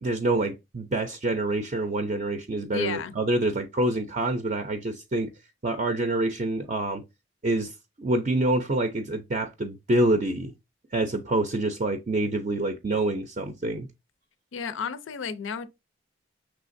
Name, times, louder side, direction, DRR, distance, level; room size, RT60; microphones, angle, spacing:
voice 1, 0.0-5.3 5.6-7.0 7.4-7.7 8.0-10.5 10.9-13.9, right 2 dB, 35° right, 0.5 m, -26 dB
voice 2, 2.7-3.1 14.5-15.7, left 6 dB, 85° left, 0.5 m, -32 dB
5.7 x 3.3 x 2.5 m
head